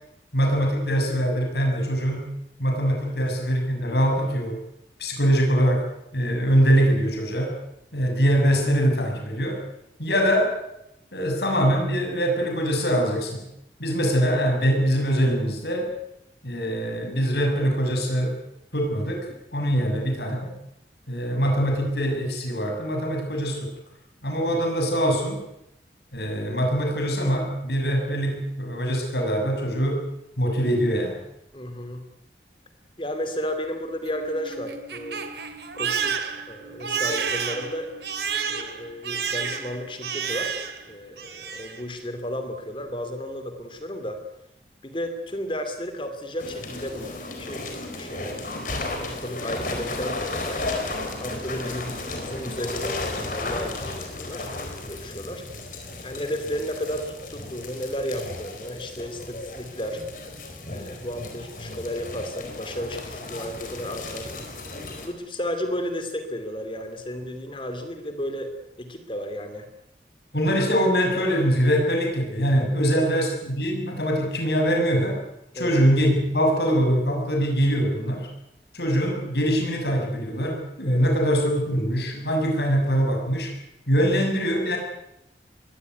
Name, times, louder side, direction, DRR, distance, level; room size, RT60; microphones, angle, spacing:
voice 1, 0.3-2.3 2.6-4.6 5.0-5.9 6.1-7.6 7.9-9.6 10.0-10.5 11.1-13.5 13.8-15.9 16.4-18.4 18.7-20.5 21.1-23.7 24.2-25.4 26.1-30.0 30.4-31.2 70.3-75.2 75.5-78.3 78.7-83.5 83.9-84.8, equal, 70° left, 3 dB, 6.9 m, -23 dB
voice 2, 31.5-32.1 33.0-35.3 35.7-37.9 38.4-40.6 40.8-44.2 44.8-48.5 49.0-50.7 51.2-55.5 56.0-60.0 60.7-64.3 64.9-68.5 68.8-69.7 72.9-73.1 75.5-75.8 80.9-81.1, equal, 30° left, 7 dB, 2.6 m, -33 dB
Crying sobbing, 33.9-40.9 41.2-41.8, right 6 dB, 75° right, 2.7 m, -31 dB
sound 1, 46.4-65.1, left 2 dB, 50° left, 4.7 m, -34 dB
22.0 x 17.5 x 9.6 m, 0.84 s
head